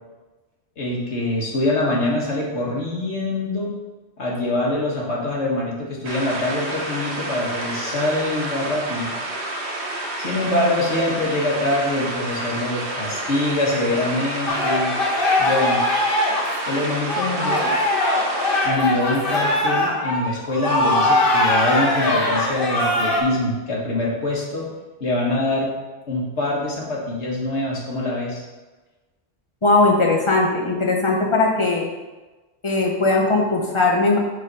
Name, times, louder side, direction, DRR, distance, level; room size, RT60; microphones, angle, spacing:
voice 1, 0.8-3.7 4.2-9.1 10.2-14.9 15.4-15.8 16.7-17.7 18.6-24.7 25.0-25.7 26.1-28.4, left 2 dB, 85° left, -3 dB, 1.7 m, -24 dB
sound 1, 6.0-18.7, right 1 dB, 80° right, 1.3 m, -29 dB
sound 2, 14.5-23.2, left 1 dB, 55° left, 1.2 m, -21 dB
voice 2, 29.6-31.9 32.6-34.2, left 2 dB, 30° left, -1 dB, 1.0 m, -19 dB
6.4 x 3.9 x 5.3 m, 1.2 s
omnidirectional pair, 1.1 m